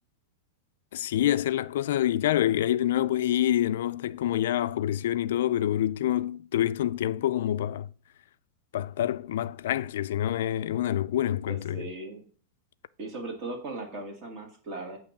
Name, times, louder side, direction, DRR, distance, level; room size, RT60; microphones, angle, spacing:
voice 1, 0.9-7.9 8.7-11.8, left 12 dB, 75° left, 0.4 m, -27 dB
voice 2, 11.5-12.2 13.0-15.0, right 2 dB, 35° right, 1.7 m, -38 dB
8.8 x 3.1 x 6.4 m
supercardioid pair, 155°, 0 cm